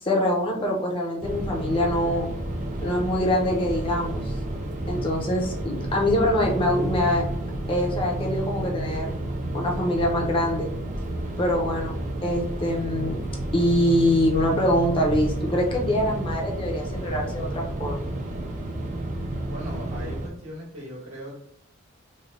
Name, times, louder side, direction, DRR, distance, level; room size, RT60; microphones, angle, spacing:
voice 1, 0.0-2.3 2.8-4.3 4.9-7.2 7.7-9.1 9.5-10.7 11.4-13.2 13.5-18.1, left 1 dB, 25° left, -1 dB, 0.6 m, -24 dB
sound 1, 1.2-20.3, right 1 dB, 35° right, 0.4 m, -31 dB
voice 2, 19.4-21.4, equal, 75° right, -4 dB, 1.5 m, -38 dB
3.2 x 2.2 x 3.7 m, 0.67 s
head